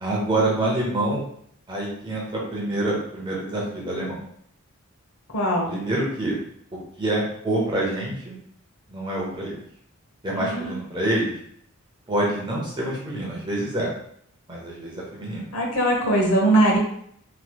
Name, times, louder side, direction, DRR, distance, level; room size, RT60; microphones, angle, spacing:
voice 1, 0.0-1.2 1.7-4.2 5.6-6.4 7.0-8.4 8.9-9.6 10.2-11.3 12.1-13.9 14.5-15.5, right 1 dB, 20° right, -4 dB, 0.7 m, -26 dB
voice 2, 5.3-5.7 10.4-10.8 15.5-16.8, right 1 dB, 70° left, -2 dB, 0.9 m, -21 dB
3.1 x 3.0 x 2.2 m, 0.66 s
head